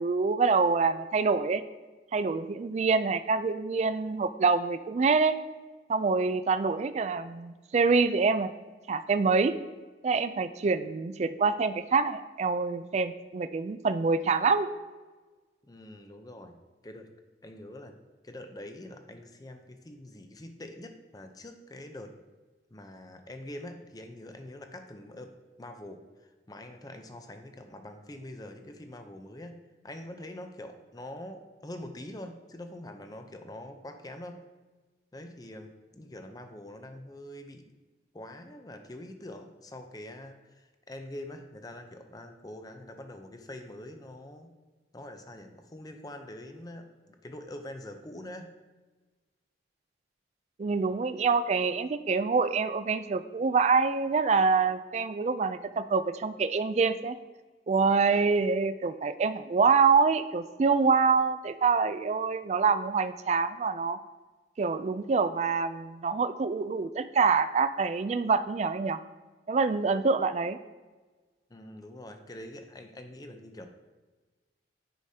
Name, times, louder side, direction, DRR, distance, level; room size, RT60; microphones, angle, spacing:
voice 1, 0.0-1.6 2.1-5.4 5.9-8.5 8.9-9.5 10.0-14.7 50.6-57.2 57.7-64.0 64.6-69.0 69.5-70.6, right 4 dB, 35° right, 11 dB, 0.3 m, -26 dB
voice 2, 15.6-17.1 17.4-18.0 18.2-22.2 22.7-29.6 29.8-34.4 35.1-37.6 38.1-44.5 44.9-48.5 71.5-73.7, left 1 dB, 20° left, 6 dB, 0.5 m, -44 dB
10.0 x 4.9 x 2.8 m, 1.3 s
head